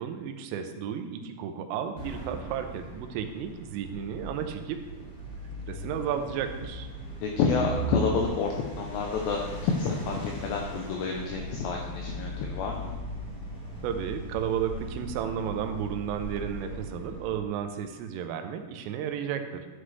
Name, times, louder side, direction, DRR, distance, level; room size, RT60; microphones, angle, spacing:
voice 1, 0.0-5.1 5.7-6.9 13.8-19.7, right 8 dB, 85° right, 6 dB, 3.1 m, -33 dB
sound 1, 2.0-17.5, right 1 dB, 40° left, 1.0 m, -39 dB
voice 2, 7.2-8.5 8.8-12.9, left 5 dB, 85° left, 1 dB, 2.5 m, -29 dB
11.0 x 7.7 x 3.2 m, 1.2 s
omnidirectional pair, 5.9 m